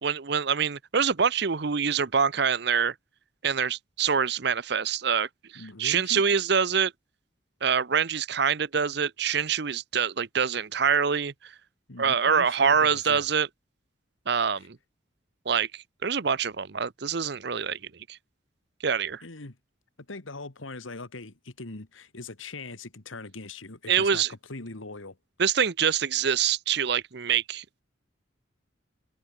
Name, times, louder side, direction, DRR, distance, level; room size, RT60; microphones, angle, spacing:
voice 1, 0.0-2.9 3.4-6.9 7.6-11.5 12.0-13.5 14.3-14.8 15.5-17.8 18.1-18.2 18.8-19.2 23.9-24.3 25.4-27.6, right 6 dB, 55° right, 0.7 m, -25 dB
voice 2, 5.6-6.2 11.9-13.3 19.2-19.6 20.1-25.2, left 3 dB, 85° left, 1.9 m, -41 dB
head